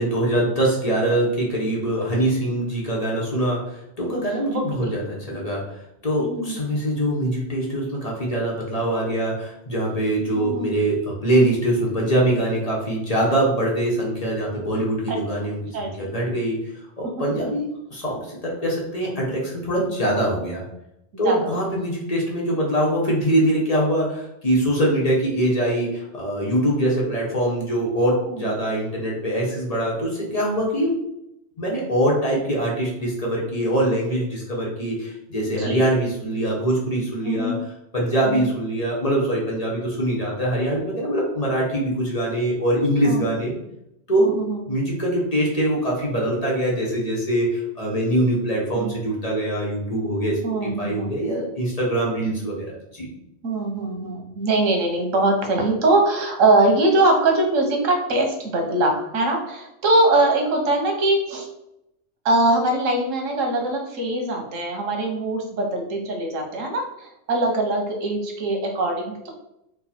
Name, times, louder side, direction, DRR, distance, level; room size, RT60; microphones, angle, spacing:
voice 1, 0.0-5.6 6.0-16.6 17.0-20.6 21.2-31.0 31.6-37.5 37.9-43.5 44.1-44.3 44.7-52.7 52.9-53.1, right 1 dB, 35° left, -3 dB, 1.0 m, -23 dB
voice 2, 4.5-4.9 6.2-6.7 10.3-10.7 15.1-15.2 15.7-16.4 21.1-21.6 28.3-28.4 35.5-35.8 37.2-37.6 38.2-38.5 43.0-43.4 44.2-44.7 48.8-48.9 50.4-51.4 53.4-61.5 62.2-69.3, right 2 dB, 85° right, 2 dB, 1.3 m, -22 dB
4.5 x 2.3 x 4.2 m, 0.83 s
omnidirectional pair, 1.3 m